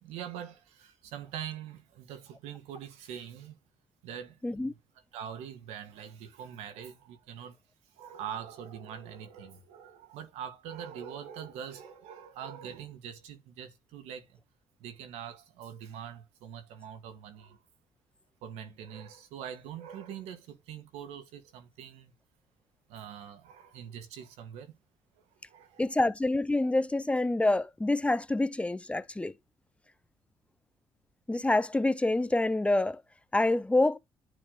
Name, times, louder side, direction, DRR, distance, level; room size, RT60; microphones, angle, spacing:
voice 1, 0.0-3.6 4.0-4.8 5.1-7.6 7.9-14.4 14.8-17.6 18.4-22.1 22.9-24.8 25.2-26.0, right 8 dB, 80° right, 1.6 m, -43 dB
voice 2, 4.4-4.7 25.8-29.3 31.3-33.0 33.3-34.0, left 2 dB, 10° left, 0.7 m, -27 dB
9.8 x 3.3 x 4.0 m
supercardioid pair, 65°, 11 cm